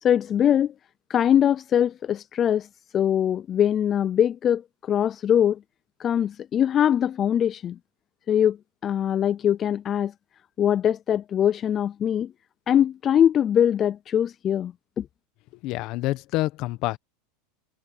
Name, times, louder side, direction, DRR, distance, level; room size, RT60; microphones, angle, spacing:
voice 1, 0.0-0.7 1.1-2.7 2.9-5.6 6.0-7.8 8.3-8.6 8.8-10.1 10.6-12.3 12.7-15.1, left 9 dB, 25° left, 0.3 m, -22 dB
voice 2, 15.6-17.0, left 18 dB, 40° left, 1.0 m, -27 dB
supercardioid pair, 160°, 0 cm